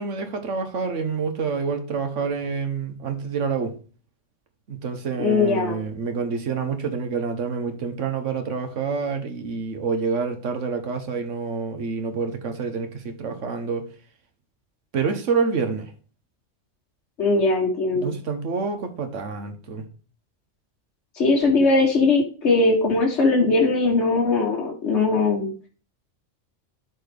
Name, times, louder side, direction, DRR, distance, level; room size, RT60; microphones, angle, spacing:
voice 1, 0.0-3.7 4.7-13.8 14.9-15.9 17.9-19.8, right 5 dB, 80° right, 1.4 m, -27 dB
voice 2, 5.2-5.8 17.2-18.1 21.1-25.5, left 3 dB, 65° left, 1.5 m, -20 dB
12.0 x 4.3 x 3.4 m
omnidirectional pair, 1.2 m